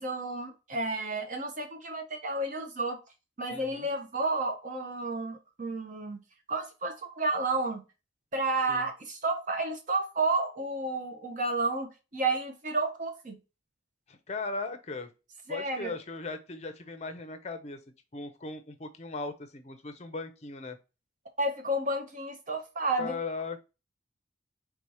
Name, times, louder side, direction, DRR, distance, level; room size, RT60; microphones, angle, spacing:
voice 1, 0.0-3.0 3.4-6.2 6.5-7.8 8.3-13.4 15.5-15.9 21.4-23.2, right 2 dB, 40° right, 0.8 m, -31 dB
voice 2, 3.5-3.9 8.7-8.9 14.1-15.1 15.5-17.8 18.1-20.8 23.0-23.6, left 3 dB, 35° left, 0.5 m, -38 dB
3.6 x 2.8 x 4.8 m
head